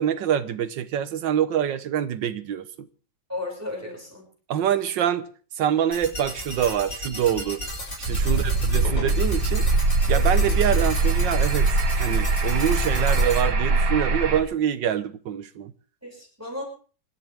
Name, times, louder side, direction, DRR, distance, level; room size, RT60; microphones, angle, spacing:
voice 1, 0.0-2.9 4.5-5.3 5.5-7.7 8.0-9.7 10.1-15.7, right 9 dB, 85° right, 1.7 m, -25 dB
voice 2, 3.3-4.2 8.2-8.6 13.1-13.2 16.0-16.6, left 2 dB, 10° right, 6.3 m, -35 dB
sound 1, 5.9-13.4, left 1 dB, 45° left, 7.4 m, -35 dB
sound 2, 8.1-14.4, right 3 dB, 65° right, 2.2 m, -22 dB
26.0 x 13.5 x 3.5 m
omnidirectional pair, 1.9 m